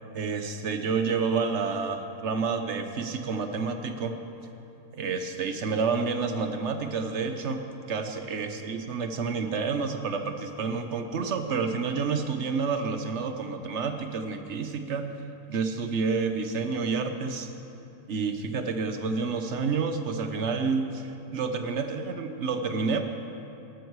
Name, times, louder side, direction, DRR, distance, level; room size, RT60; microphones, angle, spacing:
voice 1, 0.1-4.1 4.9-7.6 7.9-15.2 15.5-17.5 18.1-23.0, right 5 dB, 50° right, 7 dB, 1.2 m, -29 dB
18.0 x 13.0 x 4.8 m, 2.9 s
omnidirectional pair, 1.6 m